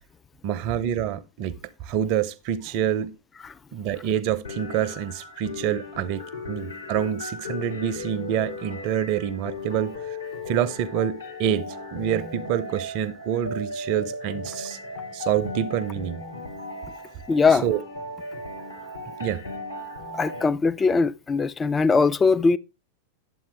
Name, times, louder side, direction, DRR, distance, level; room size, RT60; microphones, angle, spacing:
voice 1, 0.4-3.1 3.7-10.2 10.5-14.8 15.1-16.2 17.5-17.8 19.2-19.4, right 10 dB, 45° right, 0.6 m, -27 dB
sound 1, 4.4-20.4, left 2 dB, 80° left, 2.1 m, -36 dB
voice 2, 17.3-17.6 20.1-22.6, left 4 dB, 15° left, 0.4 m, -20 dB
9.3 x 7.3 x 3.4 m
figure-of-eight pair, 90°, 0 cm